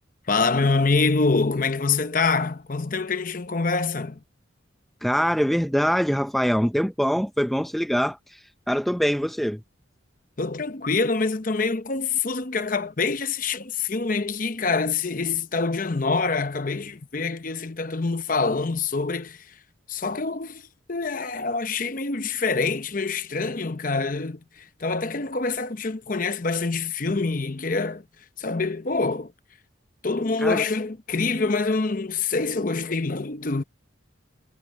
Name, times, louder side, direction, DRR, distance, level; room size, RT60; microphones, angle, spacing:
voice 1, 0.3-4.2 10.4-19.4 19.9-20.6 20.9-28.0 28.4-29.3 30.0-33.6, left 4 dB, 40° left, 0.8 m, -25 dB
voice 2, 5.0-8.4 8.7-9.6 30.4-30.6, equal, ahead, 0.6 m, -23 dB
head